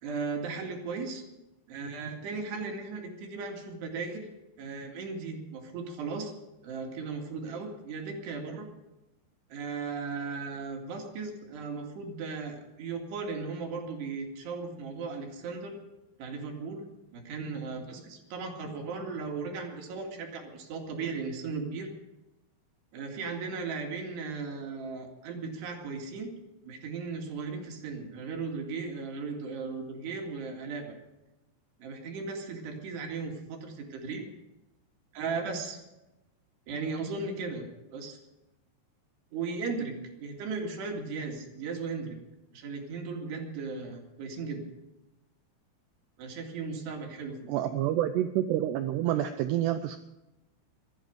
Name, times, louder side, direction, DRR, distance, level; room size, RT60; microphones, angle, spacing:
voice 1, 0.0-1.2 1.7-4.3 4.6-6.3 6.6-8.7 9.5-15.8 16.2-16.9 17.1-21.9 22.9-26.3 26.6-31.0 31.8-34.3 35.1-35.8 36.7-38.2 39.3-42.2 42.5-44.6 46.2-47.7, right 4 dB, 65° right, 2 dB, 4.1 m, -36 dB
voice 2, 47.5-50.0, right 12 dB, 90° right, 10 dB, 2.4 m, -28 dB
18.0 x 13.0 x 5.3 m, 0.98 s
omnidirectional pair, 5.6 m